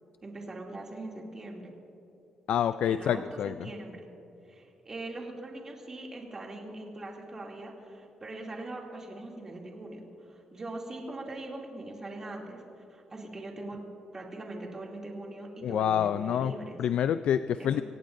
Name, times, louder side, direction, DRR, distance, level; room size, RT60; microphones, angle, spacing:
voice 1, 0.2-1.7 2.8-4.1 4.5-13.8 14.1-16.8 17.6-17.8, right 2 dB, 25° right, -1 dB, 2.6 m, -41 dB
voice 2, 2.5-3.5 15.6-16.5 16.8-17.8, left 9 dB, 70° left, 12 dB, 0.3 m, -27 dB
25.0 x 17.5 x 2.6 m, 3.0 s
cardioid pair, 130°, 2 cm